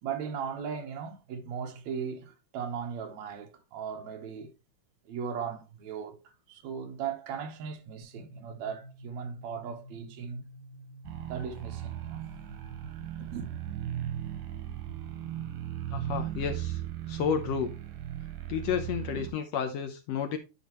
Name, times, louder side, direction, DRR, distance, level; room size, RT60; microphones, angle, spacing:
voice 1, 0.0-4.5 5.1-10.4 11.3-12.2 13.3-13.5, right 7 dB, 65° right, 2.2 m, -37 dB
sound 1, 8.0-15.6, right 1 dB, 55° left, 2.9 m, -50 dB
sound 2, 11.0-19.3, right 12 dB, 85° right, 2.7 m, -37 dB
voice 2, 15.9-16.8 17.1-17.8 18.5-20.4, left 7 dB, 75° left, 1.6 m, -31 dB
11.0 x 5.2 x 3.0 m
omnidirectional pair, 3.7 m